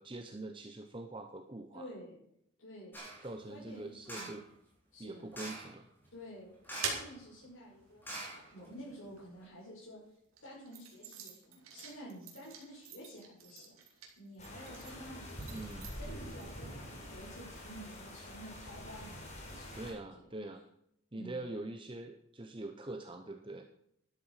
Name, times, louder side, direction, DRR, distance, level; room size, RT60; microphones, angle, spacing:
voice 1, 0.0-1.9 3.2-4.4 5.0-5.9 15.5-16.0 19.7-20.6 21.1-23.6, right 2 dB, 25° right, 6 dB, 0.8 m, -44 dB
voice 2, 1.7-2.2 2.6-3.0 3.5-4.4 4.9-5.2 6.1-6.5 6.8-10.0 10.4-15.6 16.0-20.2 21.1-21.5, equal, 85° left, -8 dB, 6.1 m, -51 dB
sound 1, 2.9-3.3 4.1-4.5 5.3-5.8 6.6-7.2 7.4-7.5 8.0-8.9 9.4-9.5, right 1 dB, 10° left, 4.3 m, -44 dB
sound 2, 6.1-9.7 10.3-16.5, right 6 dB, 85° right, 3.1 m, -47 dB
sound 3, 14.4-19.9, equal, 35° left, 4.1 m, -46 dB
13.0 x 11.5 x 4.9 m, 0.74 s
head